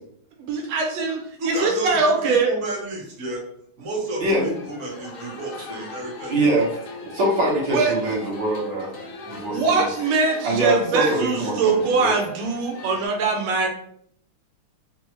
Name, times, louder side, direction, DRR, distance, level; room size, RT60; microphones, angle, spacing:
voice 1, 0.4-2.5 7.7-7.9 9.5-13.7, right 4 dB, 85° right, 1 dB, 1.6 m, -22 dB
voice 2, 1.4-3.4 3.8-6.5, right 2 dB, 45° right, -4 dB, 1.4 m, -31 dB
voice 3, 4.2-4.5 5.7-5.8 6.3-8.9 9.3-9.8 10.4-12.1, right 1 dB, 60° right, -5 dB, 2.0 m, -23 dB
sound 1, 4.4-13.1, left 2 dB, 85° left, 0.7 m, -39 dB
5.7 x 2.0 x 3.0 m, 0.67 s
omnidirectional pair, 2.3 m